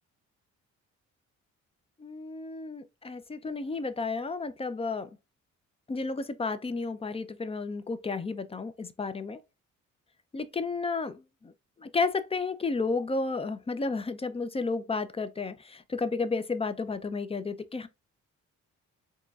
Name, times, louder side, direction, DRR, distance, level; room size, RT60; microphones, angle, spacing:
voice 1, 2.0-5.1 5.9-9.4 10.3-11.5 11.8-17.9, left 4 dB, 20° left, 0.4 m, -32 dB
4.4 x 3.0 x 2.3 m
cardioid pair, 90°, 30 cm